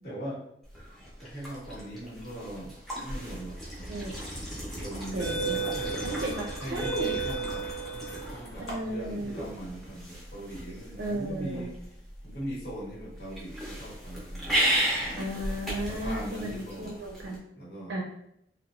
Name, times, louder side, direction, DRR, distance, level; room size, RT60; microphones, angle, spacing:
voice 1, 0.0-0.4 1.0-3.9 4.5-6.2 6.6-7.7 7.9-11.7 12.2-14.7 15.0-15.2 15.8-17.0 17.5-18.0, right 1 dB, 55° left, -6 dB, 1.1 m, -40 dB
sound 1, 0.6-17.4, right 1 dB, ahead, 0.6 m, -35 dB
sound 2, 3.9-4.2 4.9-8.7, right 4 dB, 80° left, 0.7 m, -34 dB
voice 2, 3.9-4.4 5.1-5.6 6.0-7.2 8.6-9.3 11.0-11.7 15.2-17.4 17.9-18.0, right 1 dB, 75° right, -1 dB, 0.4 m, -34 dB
3.0 x 2.0 x 2.3 m, 0.74 s
head